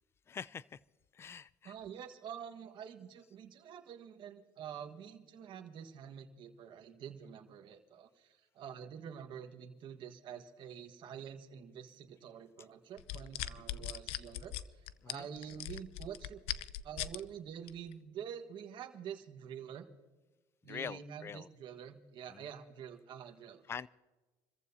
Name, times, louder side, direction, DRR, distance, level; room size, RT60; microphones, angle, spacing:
voice 1, 0.3-0.8 1.1-1.7 13.7-13.9 15.0-15.3 20.7-21.5 22.3-22.5 23.7-23.9, left 7 dB, 25° left, 21 dB, 0.4 m, -44 dB
voice 2, 1.6-16.4 16.8-19.9 20.6-23.6, right 8 dB, 55° right, 4 dB, 1.5 m, -47 dB
sound 1, 13.0-17.2 17.7-17.9, left 13 dB, 80° left, 0.6 m, -40 dB
28.0 x 14.5 x 2.8 m, 1.2 s
cardioid pair, 115°, 10 cm